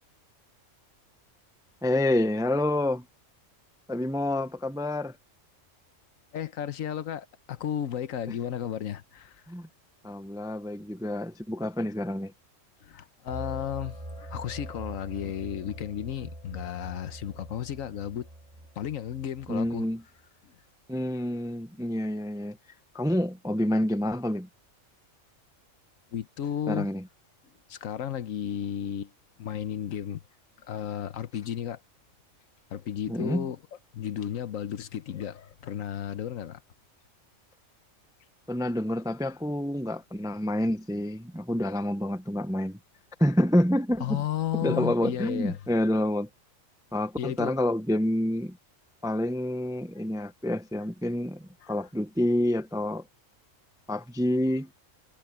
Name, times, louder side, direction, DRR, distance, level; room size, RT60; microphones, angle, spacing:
voice 1, 1.8-3.1 3.9-5.2 9.5-9.7 10.0-12.3 19.5-20.0 20.9-22.6 22.9-24.5 26.7-27.0 33.1-33.5 38.5-42.8 43.2-44.2 44.5-46.3 46.9-48.6 49.0-53.0 53.9-54.7, left 1 dB, 5° right, 0.3 m, -28 dB
voice 2, 6.3-9.4 12.8-18.3 18.8-19.9 20.4-20.5 26.1-26.9 27.7-29.1 29.4-30.2 30.7-31.8 32.7-33.6 33.9-36.6 44.0-45.6 47.2-47.6 50.2-50.3 51.6-51.7, left 10 dB, 85° left, 1.3 m, -33 dB
sound 1, 13.3-19.8, right 1 dB, 25° right, 2.4 m, -43 dB
omnidirectional pair, 1.3 m